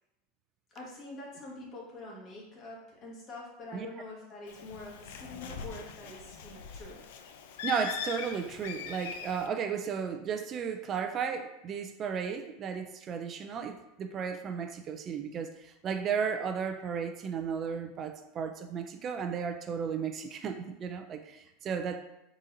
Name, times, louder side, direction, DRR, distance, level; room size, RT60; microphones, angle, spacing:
voice 1, 0.7-7.0, left 2 dB, 40° left, -3 dB, 1.4 m, -45 dB
Bird, 4.5-9.5, left 7 dB, 75° left, 0.4 m, -41 dB
voice 2, 7.6-22.0, right 6 dB, 35° right, 7 dB, 0.3 m, -34 dB
3.9 x 3.8 x 2.6 m, 0.91 s
supercardioid pair, 115°, 0 cm